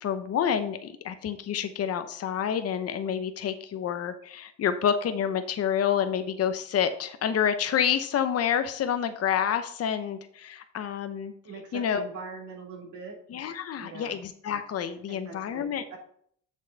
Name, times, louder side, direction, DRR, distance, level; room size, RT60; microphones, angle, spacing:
voice 1, 0.0-11.3 11.7-12.0 13.3-15.9, left 8 dB, 55° left, 9 dB, 0.8 m, -28 dB
voice 2, 11.4-13.1 13.8-14.1 15.1-16.0, right 4 dB, 75° right, -3 dB, 2.8 m, -42 dB
7.0 x 6.5 x 4.0 m, 0.62 s
cardioid pair, 90°, 30 cm